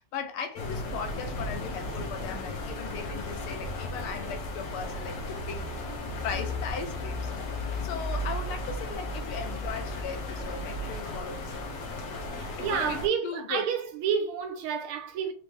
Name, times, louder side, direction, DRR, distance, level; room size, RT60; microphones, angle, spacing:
voice 1, 0.0-11.7 12.6-13.7, left 6 dB, 85° left, 1.6 m, -38 dB
sound 1, 0.6-13.1, left 1 dB, 60° left, 1.1 m, -35 dB
voice 2, 12.3-15.3, right 7 dB, 85° right, 1.5 m, -30 dB
4.2 x 2.5 x 3.3 m
omnidirectional pair, 2.3 m